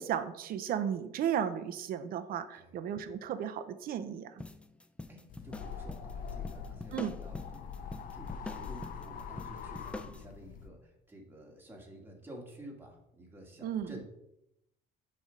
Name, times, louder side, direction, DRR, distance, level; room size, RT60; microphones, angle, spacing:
voice 1, 0.0-4.3 6.9-7.2 13.6-14.0, right 9 dB, 60° right, 9 dB, 0.6 m, -34 dB
sound 1, 4.4-10.2, left 2 dB, 5° left, 0.3 m, -45 dB
voice 2, 5.1-7.7 8.1-14.0, right 1 dB, 10° right, 0 dB, 1.6 m, -51 dB
sound 2, 5.3-10.7, left 6 dB, 55° left, 0.7 m, -43 dB
6.5 x 3.3 x 5.0 m, 0.82 s
cardioid pair, 110°, 17 cm